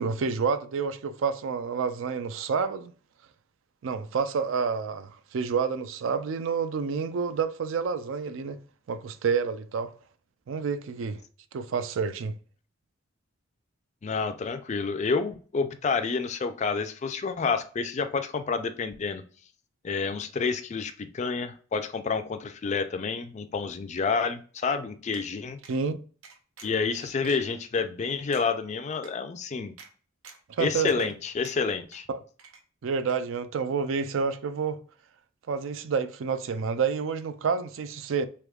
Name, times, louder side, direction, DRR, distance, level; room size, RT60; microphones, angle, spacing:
voice 1, 0.0-2.9 3.8-8.6 8.9-9.9 10.5-11.2 11.5-12.3 25.7-26.0 30.6-31.1 32.1-32.2 32.8-34.8 35.5-38.3, right 5 dB, 65° right, 0.4 m, -29 dB
voice 2, 14.0-19.2 19.8-25.6 26.6-29.7 30.6-32.1, left 5 dB, 35° left, 0.3 m, -29 dB
sound 1, 25.1-25.3 25.6-25.8 26.2-26.8 27.2-27.3 27.9-28.0 28.3-28.5 29.0-29.1 29.8-29.9 30.2-30.5 30.9-31.2 31.4-32.0 32.4-32.8 33.1-33.2, right 5 dB, 90° right, 0.7 m, -48 dB
3.5 x 3.3 x 2.3 m
head